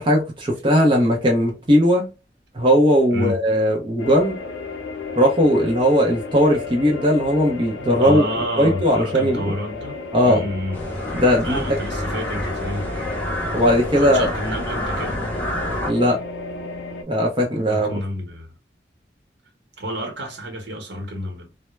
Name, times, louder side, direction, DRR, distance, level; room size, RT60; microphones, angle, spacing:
voice 1, 0.0-2.1 2.5-4.4 5.2-8.2 8.6-9.5 10.1-10.4 11.1-11.6 13.5-14.3 15.9-16.2 17.1-17.9, equal, 25° right, 0.5 m, -18 dB
voice 2, 3.1-3.4 8.0-10.0 10.2-10.9 11.4-13.1 14.0-15.2 17.7-18.5 19.8-21.5, equal, 80° right, 1.0 m, -29 dB
sound 1, 4.0-17.0, left 4 dB, 75° left, 0.5 m, -33 dB
sound 2, 10.7-15.9, equal, 10° left, 0.7 m, -28 dB
2.2 x 2.1 x 3.1 m
head